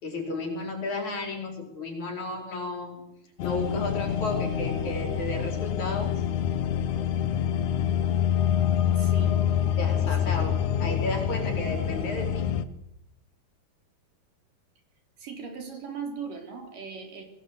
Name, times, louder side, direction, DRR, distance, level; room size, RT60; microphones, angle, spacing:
voice 1, 0.0-3.1 3.4-6.2 9.8-10.5 10.8-12.5, left 2 dB, 50° left, 3 dB, 5.8 m, -33 dB
sound 1, 3.4-12.6, left 9 dB, 65° left, 2.2 m, -26 dB
voice 2, 9.0-9.4 10.2-10.4 15.2-17.2, right 6 dB, 60° right, 4 dB, 5.1 m, -39 dB
24.0 x 17.5 x 8.4 m, 0.81 s
omnidirectional pair, 4.4 m